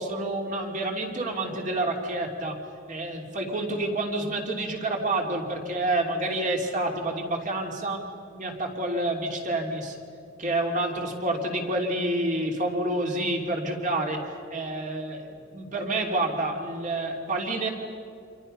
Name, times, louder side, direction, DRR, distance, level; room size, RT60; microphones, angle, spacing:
voice 1, 0.0-2.6 2.9-8.0 8.3-10.0 10.4-17.7, right 2 dB, 40° right, 1 dB, 3.2 m, -28 dB
28.5 x 26.5 x 5.6 m, 2.4 s
head